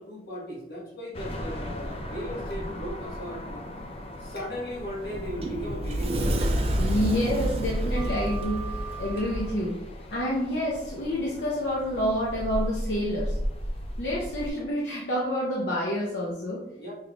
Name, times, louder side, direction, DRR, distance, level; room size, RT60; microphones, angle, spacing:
voice 1, 0.0-3.6 4.2-6.5 16.8-16.9, equal, 65° left, -4 dB, 1.3 m, -37 dB
sound 1, 1.1-14.5, equal, 35° left, 0.5 m, -37 dB
Sliding door, 4.7-9.5, right 1 dB, 35° right, 0.5 m, -29 dB
voice 2, 6.8-9.8 10.1-13.4 14.0-16.6, equal, 80° left, -4 dB, 0.8 m, -28 dB
5.4 x 3.3 x 2.4 m, 0.87 s
head